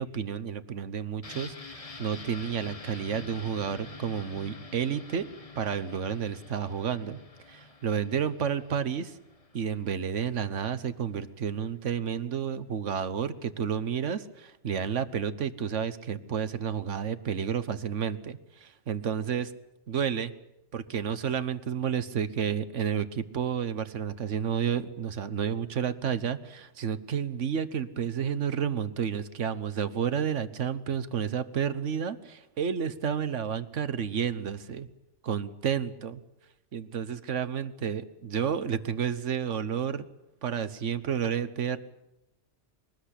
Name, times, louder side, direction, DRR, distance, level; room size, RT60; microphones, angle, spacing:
voice 1, 0.0-5.3 5.6-7.2 7.5-9.2 9.5-19.5 19.9-20.3 20.7-34.9 35.2-36.2 36.7-40.1 40.4-41.8, right 7 dB, 85° right, 13 dB, 1.4 m, -31 dB
sound 1, 1.2-10.9 11.2-11.3, left 4 dB, 30° left, 1.4 m, -47 dB
23.0 x 19.5 x 8.3 m, 0.90 s
omnidirectional pair, 1.2 m